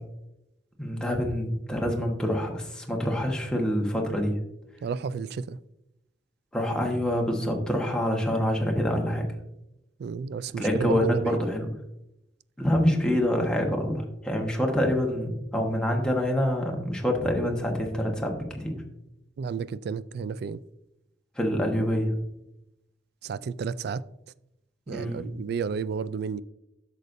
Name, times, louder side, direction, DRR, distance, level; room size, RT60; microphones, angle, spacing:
voice 1, 0.8-4.4 6.5-9.3 10.6-11.7 12.6-18.7 21.4-22.1 24.9-25.3, equal, 5° left, 1.2 m, -26 dB
voice 2, 4.8-5.6 10.0-11.4 19.4-20.6 23.2-24.0 24.9-26.4, right 5 dB, 60° right, 0.3 m, -31 dB
10.5 x 6.7 x 2.6 m
head